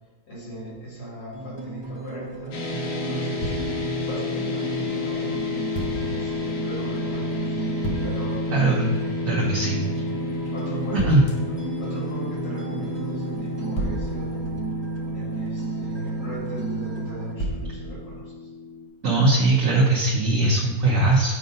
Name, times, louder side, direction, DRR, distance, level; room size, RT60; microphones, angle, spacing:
voice 1, 0.3-2.6 3.1-3.6 4.0-5.4 5.9-7.6 8.0-8.5 10.5-11.2 11.4-14.4 15.1-18.5, right 2 dB, 90° left, -7 dB, 2.8 m, -38 dB
sound 1, 1.3-17.3, right 3 dB, 40° right, 0.4 m, -35 dB
sound 2, 2.5-18.9, left 1 dB, 70° left, 1.3 m, -30 dB
sound 3, 3.4-4.2 5.7-6.3 7.8-8.4 11.0-11.6 13.8-15.2 17.4-18.2, right 1 dB, 20° left, 1.1 m, -32 dB
voice 2, 8.5-8.9 9.2-10.0 10.9-11.2 19.0-21.4, right 2 dB, 60° right, -3 dB, 1.2 m, -20 dB
7.5 x 2.6 x 5.3 m, 1.2 s
omnidirectional pair, 1.6 m